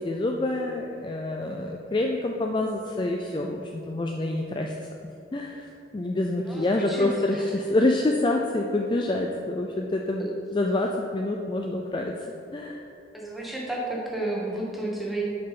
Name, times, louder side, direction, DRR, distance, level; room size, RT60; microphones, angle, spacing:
voice 1, 0.0-4.7 5.3-10.3 10.5-12.1 12.5-12.8, left 2 dB, 25° left, 1 dB, 0.3 m, -27 dB
voice 2, 6.5-7.1 10.2-10.3 13.1-15.2, right 1 dB, ahead, -4 dB, 1.2 m, -32 dB
6.3 x 5.8 x 5.8 m, 2.7 s
head